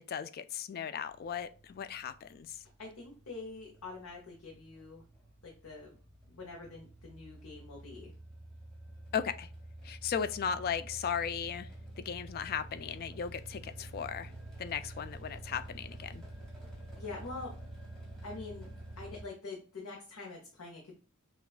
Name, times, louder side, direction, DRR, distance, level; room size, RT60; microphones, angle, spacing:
voice 1, 0.0-2.6 9.1-9.5 9.8-11.7 12.0-14.3 14.6-16.2, left 7 dB, 45° left, 0.3 m, -36 dB
sound 1, 1.1-19.2, right 1 dB, ahead, 1.1 m, -49 dB
voice 2, 2.8-5.0 5.4-5.9 6.3-8.1 17.0-17.5 18.2-18.7 19.0-20.9, left 3 dB, 75° left, 0.9 m, -45 dB
5.7 x 2.4 x 2.3 m
head